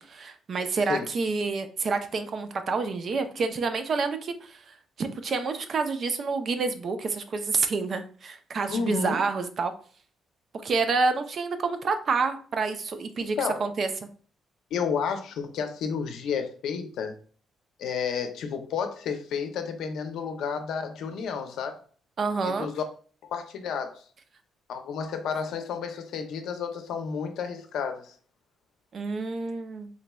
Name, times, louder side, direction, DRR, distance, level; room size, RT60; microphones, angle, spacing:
voice 1, 0.0-9.7 10.6-14.1 22.2-22.7 28.9-29.9, right 4 dB, 50° right, 8 dB, 0.5 m, -28 dB
voice 2, 8.7-9.2 13.4-13.7 14.7-17.1 17.8-21.8 22.4-22.8 23.2-24.0 24.7-28.1, left 6 dB, 80° left, 6 dB, 0.6 m, -31 dB
3.8 x 3.0 x 2.2 m, 0.43 s
cardioid pair, 90°, 0 cm